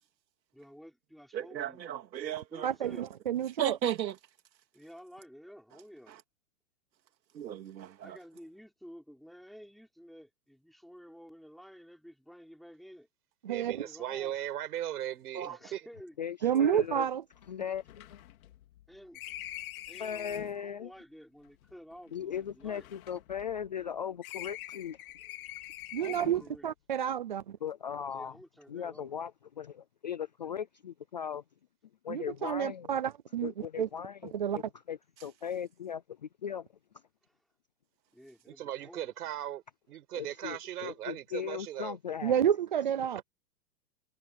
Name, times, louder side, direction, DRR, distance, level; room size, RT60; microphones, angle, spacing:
voice 1, 0.5-1.8 2.5-3.1 4.7-6.2 8.0-13.1 13.6-14.4 15.4-16.2 18.9-19.2 19.9-22.9 26.0-26.7 28.1-29.1 37.2-37.4 38.1-39.4, equal, ahead, 5.8 m, -52 dB
voice 2, 1.3-2.7 3.6-4.2 6.1-6.2 7.3-8.2 15.3-15.6 16.6-16.8, right 9 dB, 85° right, 3.1 m, -35 dB
voice 3, 2.6-3.8 13.4-13.8 16.4-17.2 25.9-27.6 32.1-33.9 34.3-34.6 42.2-43.2, right 9 dB, 30° right, 0.5 m, -30 dB
voice 4, 13.5-15.8 38.5-42.0, right 12 dB, 65° right, 6.8 m, -38 dB
voice 5, 16.2-17.1 17.5-18.2 20.0-20.9 22.1-25.0 27.6-28.3 28.7-29.3 29.6-31.4 32.0-32.9 33.4-34.6 34.9-36.7 40.1-42.4, left 8 dB, 30° left, 0.5 m, -38 dB
sound 1, 16.5-16.6 16.8-16.9 17.3-20.6 21.5-23.9 24.2-26.5, left 14 dB, 55° left, 4.6 m, -45 dB
hypercardioid pair, 170°, 50 cm